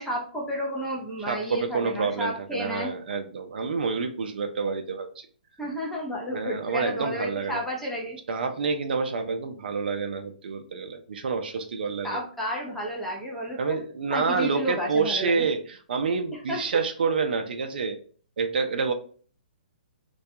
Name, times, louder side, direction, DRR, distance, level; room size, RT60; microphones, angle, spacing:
voice 1, 0.0-2.9 5.6-8.2 12.0-13.8 14.1-15.4 16.5-16.6, equal, ahead, -4 dB, 0.5 m, -31 dB
voice 2, 1.3-5.3 6.3-7.6 8.3-12.2 13.6-18.0 18.4-18.9, right 5 dB, 70° right, 6 dB, 0.4 m, -28 dB
2.2 x 2.2 x 2.7 m, 0.43 s
hypercardioid pair, 155°, 5 cm